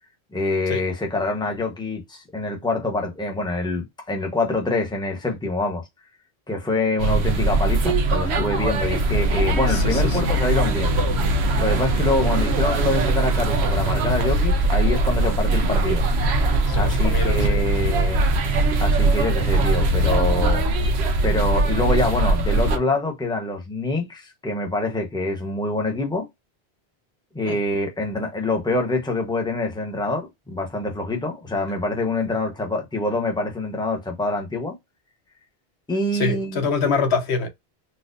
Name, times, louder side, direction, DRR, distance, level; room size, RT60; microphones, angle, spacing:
voice 1, 0.3-5.8 6.5-10.9 11.6-16.0 16.7-18.3 18.8-20.7 21.2-26.3 27.3-34.8 35.9-36.7, left 2 dB, 5° left, 0.9 m, -25 dB
sound 1, 7.0-22.8, right 2 dB, 90° right, 1.0 m, -21 dB
voice 2, 9.7-10.2 16.7-17.7 27.5-27.6 36.1-37.5, left 4 dB, 85° left, 1.2 m, -25 dB
4.2 x 2.4 x 2.5 m
omnidirectional pair, 1.1 m